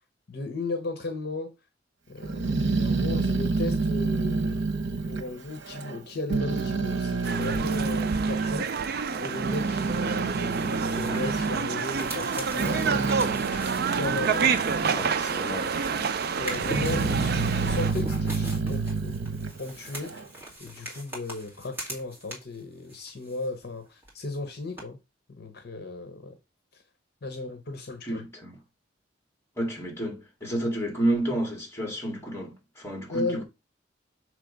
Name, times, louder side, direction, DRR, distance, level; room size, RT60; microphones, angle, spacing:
voice 1, 0.3-1.5 2.1-4.6 5.1-8.7 9.2-13.4 13.9-14.5 14.8-15.1 16.4-19.2 19.6-20.2 20.6-25.0 25.3-26.4 26.7-26.8 27.2-28.2 33.1-33.4, left 2 dB, 55° left, 0.8 m, -36 dB
Growling, 2.2-6.0 6.3-8.6 9.2-15.0 15.4-16.1 16.5-20.3, right 3 dB, 85° right, 1.0 m, -29 dB
sound 1, 7.2-17.9, right 6 dB, 55° right, 0.4 m, -29 dB
sound 2, 10.4-15.9 16.3-22.6 22.9-23.8 24.0-24.1 24.8-24.9, right 1 dB, 10° right, 2.2 m, -42 dB
voice 2, 14.9-16.1 28.0-28.6 29.6-33.4, right 1 dB, 15° left, 2.2 m, -31 dB
6.5 x 3.2 x 5.1 m
head